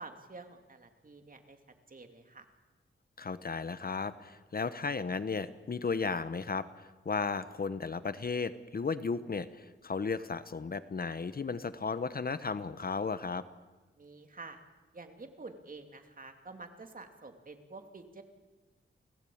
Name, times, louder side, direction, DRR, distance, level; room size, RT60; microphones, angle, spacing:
voice 1, 0.0-1.6 1.9-2.5 14.0-14.6 14.9-18.2, right 3 dB, 40° right, 6 dB, 2.9 m, -48 dB
voice 2, 3.2-13.4, left 4 dB, 45° left, 13 dB, 1.0 m, -35 dB
29.0 x 18.0 x 8.7 m, 1.2 s
wide cardioid pair, 110°, 21 cm